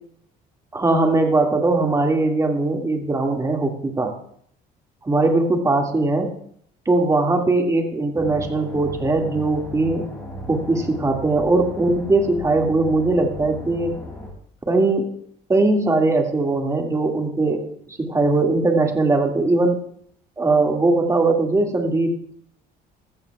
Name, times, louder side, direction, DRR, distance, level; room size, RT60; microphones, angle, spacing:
voice 1, 0.7-4.2 5.1-6.3 6.9-10.1 10.5-14.0 14.7-15.1 15.5-17.6 18.0-19.8 20.4-22.3, right 2 dB, 20° right, 2 dB, 2.0 m, -20 dB
sound 1, 8.2-14.3, left 1 dB, 10° left, 6.0 m, -36 dB
14.5 x 14.0 x 2.4 m, 0.66 s
cardioid pair, 110°, 17 cm